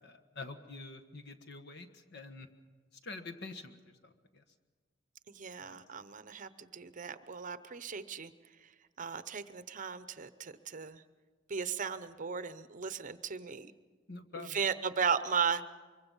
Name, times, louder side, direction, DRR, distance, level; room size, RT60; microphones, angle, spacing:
voice 1, 0.0-2.5 3.0-4.4 5.6-5.8 14.1-14.6, left 3 dB, 60° left, 8 dB, 1.4 m, -47 dB
voice 2, 5.3-8.3 9.0-11.0 11.5-13.7 14.4-15.6, right 6 dB, 45° right, 13 dB, 0.7 m, -36 dB
24.5 x 23.0 x 5.5 m, 1.4 s
head